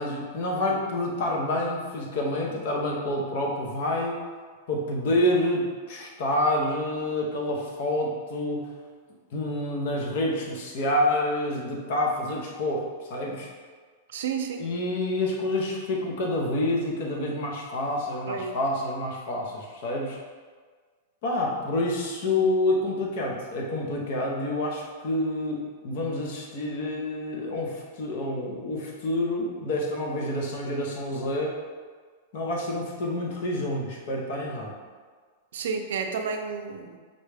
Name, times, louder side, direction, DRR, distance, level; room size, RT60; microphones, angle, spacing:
voice 1, 0.0-4.2 4.7-8.7 9.3-13.5 14.6-20.2 21.2-31.6 32.3-34.7, left 1 dB, 45° left, -1 dB, 0.7 m, -28 dB
voice 2, 14.1-14.7 18.3-18.6 35.5-37.0, right 6 dB, 70° right, 5 dB, 0.4 m, -31 dB
5.2 x 2.3 x 3.3 m, 1.5 s
supercardioid pair, 180°, 0 cm